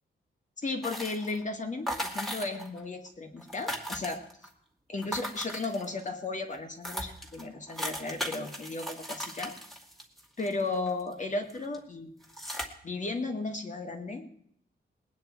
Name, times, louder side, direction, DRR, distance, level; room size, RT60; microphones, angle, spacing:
voice 1, 0.6-4.2 4.9-9.5 10.4-12.1 12.8-14.4, left 3 dB, 40° left, 4 dB, 2.1 m, -35 dB
sound 1, 0.8-1.4 1.9-2.8 3.1-3.2 3.4-4.5 5.0-6.1 6.5-6.6 6.8-11.1 11.5-11.8 12.2-12.6, equal, ahead, 2.4 m, -37 dB
20.5 x 9.5 x 4.7 m, 0.66 s
wide cardioid pair, 120°, 20 cm